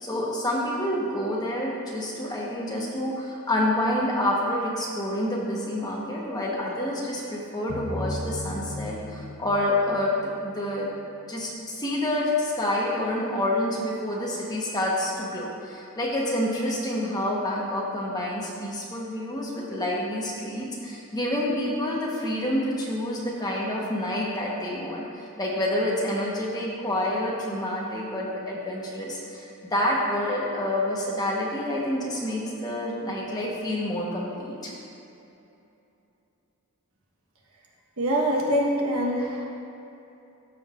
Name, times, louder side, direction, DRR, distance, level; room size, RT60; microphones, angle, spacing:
voice 1, 0.0-10.1 10.4-10.9 11.3-25.0 25.4-34.7, left 1 dB, 20° left, -4 dB, 1.1 m, -28 dB
sound 1, 7.7-10.8, left 1 dB, 40° left, 0.6 m, -36 dB
voice 2, 38.0-39.5, equal, 75° right, -1 dB, 1.2 m, -24 dB
13.5 x 5.4 x 2.5 m, 2.9 s
head